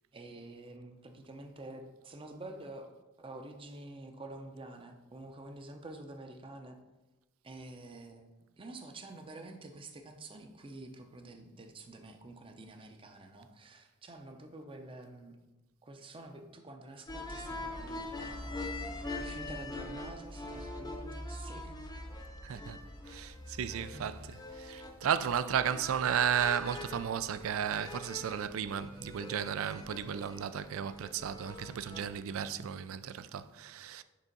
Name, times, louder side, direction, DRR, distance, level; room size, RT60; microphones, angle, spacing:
voice 1, 0.1-2.9 3.2-6.8 7.4-8.3 8.6-15.4 15.8-21.8 22.5-22.6 23.3-23.5 23.9-24.1, right 2 dB, 25° right, 0.6 m, -48 dB
sound 1, 17.1-32.2, left 2 dB, 20° left, 0.7 m, -43 dB
voice 2, 22.4-22.8 23.1-24.3 24.6-34.0, right 8 dB, 85° right, 0.4 m, -34 dB
6.7 x 3.6 x 5.2 m
head